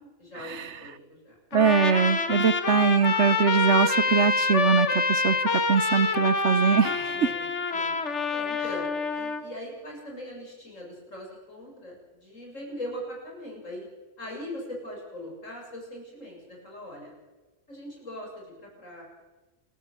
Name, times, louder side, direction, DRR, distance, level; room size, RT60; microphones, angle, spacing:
voice 1, 0.2-1.4 7.1-8.0 8.3-13.9 14.2-17.1 17.7-19.0, left 1 dB, 85° left, -1 dB, 8.0 m, -40 dB
Trumpet, 1.5-9.4, left 4 dB, 65° left, 1.9 m, -26 dB
voice 2, 1.5-7.3, right 6 dB, 65° right, 17 dB, 1.2 m, -23 dB
28.5 x 13.5 x 8.9 m, 1.2 s
omnidirectional pair, 1.3 m